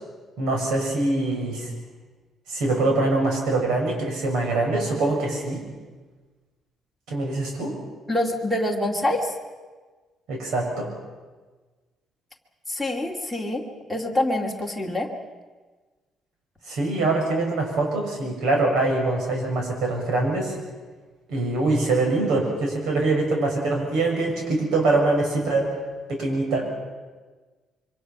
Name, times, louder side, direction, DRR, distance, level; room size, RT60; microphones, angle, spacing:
voice 1, 0.4-1.7 2.5-5.6 7.1-7.8 10.3-10.9 16.7-20.6 21.3-25.7 26.1-26.6, right 2 dB, 85° right, 0 dB, 6.9 m, -24 dB
voice 2, 8.1-9.4 12.7-15.1, left 1 dB, ahead, 2 dB, 2.4 m, -26 dB
26.0 x 24.5 x 6.1 m, 1.3 s
cardioid pair, 175°, 0 cm